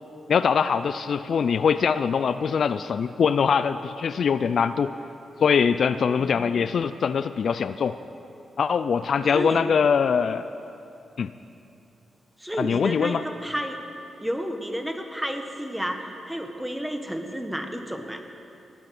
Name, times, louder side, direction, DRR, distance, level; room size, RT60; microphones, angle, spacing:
voice 1, 0.3-4.9 5.4-8.0 8.6-10.4 11.2-11.3 12.6-13.2, left 6 dB, 65° left, 13 dB, 0.3 m, -23 dB
voice 2, 6.2-6.5 9.3-9.6 12.4-13.8 14.2-18.2, equal, 5° right, 5 dB, 1.5 m, -31 dB
18.5 x 8.6 x 6.0 m, 2.8 s
cardioid pair, 60°, 0 cm